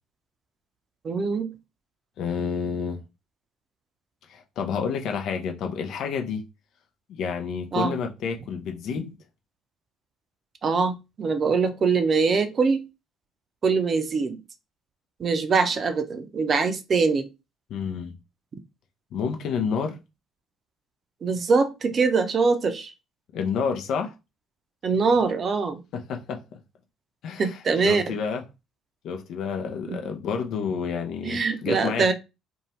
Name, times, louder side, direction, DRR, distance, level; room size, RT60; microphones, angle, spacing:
voice 1, 1.0-1.5 7.7-7.9 10.6-12.8 13.6-14.4 15.2-17.3 21.2-22.9 24.8-25.8 27.4-28.2 29.9-30.0 31.2-32.1, right 4 dB, 45° right, 0.5 m, -23 dB
voice 2, 2.2-3.0 4.3-6.5 7.1-9.1 17.7-18.1 19.1-20.0 23.3-24.1 25.9-26.4 27.2-27.6 27.8-28.4 29.0-32.1, left 6 dB, 60° left, 0.5 m, -29 dB
2.6 x 2.2 x 3.0 m
figure-of-eight pair, 50°, 0 cm